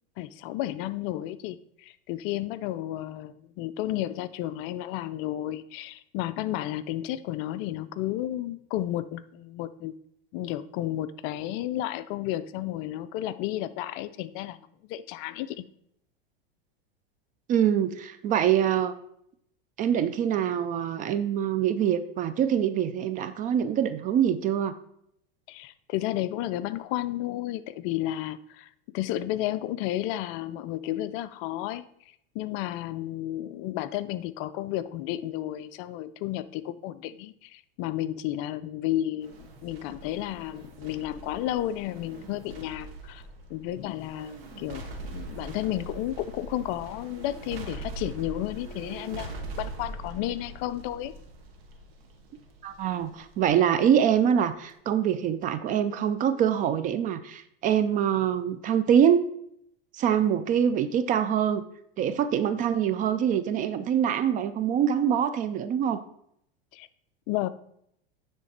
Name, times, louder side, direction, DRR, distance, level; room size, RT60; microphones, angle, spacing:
voice 1, 0.2-9.9 10.3-14.6 14.9-15.6 25.5-31.8 32.3-43.2 43.5-51.1 66.7-66.9 67.3-67.5, left 14 dB, 45° left, 14 dB, 0.4 m, -32 dB
voice 2, 17.5-18.9 19.8-24.7 52.6-59.3 59.9-61.6 62.0-66.0, right 9 dB, 30° right, 11 dB, 0.4 m, -24 dB
sound 1, 39.2-54.7 55.1-55.2, right 2 dB, 80° right, 1.5 m, -42 dB
9.6 x 3.3 x 4.2 m, 0.72 s
hypercardioid pair, 110°, 30 cm